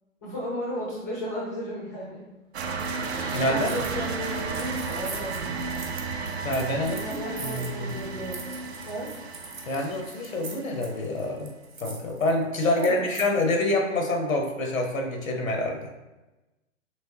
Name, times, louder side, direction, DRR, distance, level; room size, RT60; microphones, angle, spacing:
voice 1, 0.2-2.2 3.5-5.4 7.0-8.4 8.8-9.1 12.6-13.1, equal, 15° left, -5 dB, 0.4 m, -34 dB
sound 1, 2.5-11.0, right 4 dB, 55° right, 0.5 m, -33 dB
Sliding door, 3.0-5.8, right 2 dB, 35° right, 0.8 m, -41 dB
voice 2, 3.3-3.7 6.4-7.9 9.7-11.5 11.8-15.9, left 1 dB, 80° left, 1 dB, 0.9 m, -27 dB
sound 2, 3.6-4.0 4.2-13.3, right 3 dB, 85° right, 0.8 m, -43 dB
3.2 x 3.0 x 2.9 m, 1.1 s
figure-of-eight pair, 120°, 40 cm